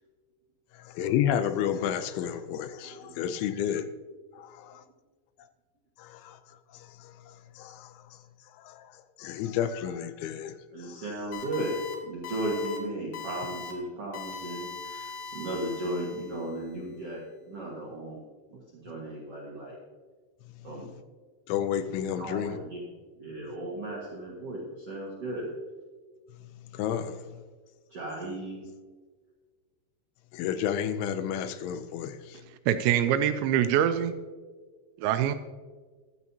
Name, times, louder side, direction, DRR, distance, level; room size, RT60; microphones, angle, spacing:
voice 1, 0.9-3.9 4.4-4.8 6.0-6.4 7.0-7.1 7.6-7.9 8.6-8.9 9.2-10.5 10.8-11.0 21.5-22.6 26.7-27.2 30.3-32.4, left 9 dB, 80° left, 11 dB, 2.9 m, -31 dB
voice 2, 2.8-3.2 10.7-18.2 18.5-19.8 20.6-20.9 22.2-22.8 23.2-25.5 27.9-28.6, right 1 dB, 65° right, -4 dB, 1.5 m, -35 dB
sound 1, 11.3-11.9 12.2-12.8 13.1-13.7 14.1-16.5, left 5 dB, 55° left, 2.3 m, -40 dB
voice 3, 32.7-34.1 35.0-35.4, right 10 dB, 85° right, 10 dB, 2.7 m, -24 dB
14.0 x 12.0 x 2.8 m, 1.4 s
omnidirectional pair, 5.5 m